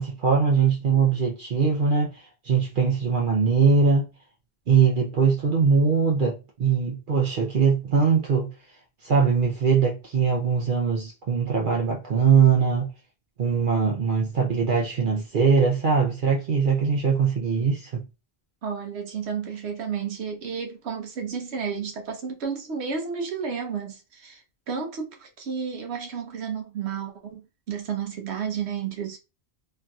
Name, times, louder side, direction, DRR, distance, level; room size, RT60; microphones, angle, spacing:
voice 1, 0.0-4.1 4.7-8.5 9.0-12.9 13.4-18.0, right 5 dB, 55° right, 0.7 m, -21 dB
voice 2, 18.6-29.2, right 6 dB, 90° right, 1.0 m, -32 dB
3.1 x 2.6 x 2.3 m
omnidirectional pair, 1.1 m